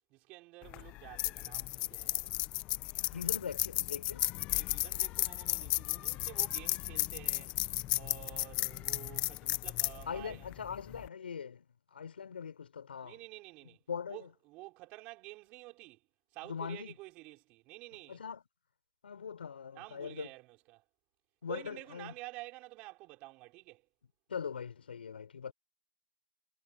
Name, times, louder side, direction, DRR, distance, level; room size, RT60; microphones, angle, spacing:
voice 1, 0.1-2.3 4.5-7.6 7.9-10.5 13.0-13.8 14.1-16.0 16.3-18.2 19.7-20.8 21.5-23.8, right 21 dB, 25° right, 5.3 m, -50 dB
sound 1, 0.6-11.1, left 17 dB, 20° left, 0.6 m, -34 dB
voice 2, 3.1-4.3 10.1-13.2 13.9-14.3 16.4-16.9 18.1-18.4 19.0-20.3 21.4-22.1 24.3-25.5, left 7 dB, 90° left, 4.0 m, -41 dB
hypercardioid pair, 160°, 5 cm